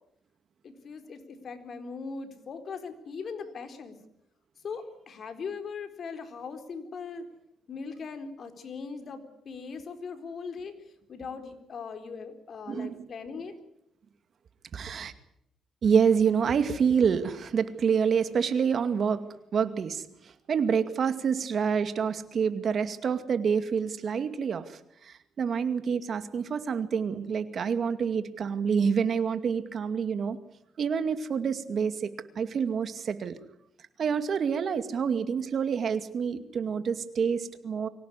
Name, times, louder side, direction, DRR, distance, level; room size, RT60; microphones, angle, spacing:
voice 1, 0.6-4.0 4.6-7.3 7.7-10.7 11.1-13.5, left 5 dB, 55° left, 7 dB, 4.1 m, -39 dB
voice 2, 12.7-13.1 14.7-15.1 15.8-19.2 19.5-20.0 20.5-24.6 25.1-30.4 30.8-32.1 32.4-33.4 34.0-37.9, right 6 dB, 55° right, 10 dB, 2.3 m, -27 dB
25.0 x 17.5 x 9.9 m, 0.79 s
cardioid pair, 90°, 0 cm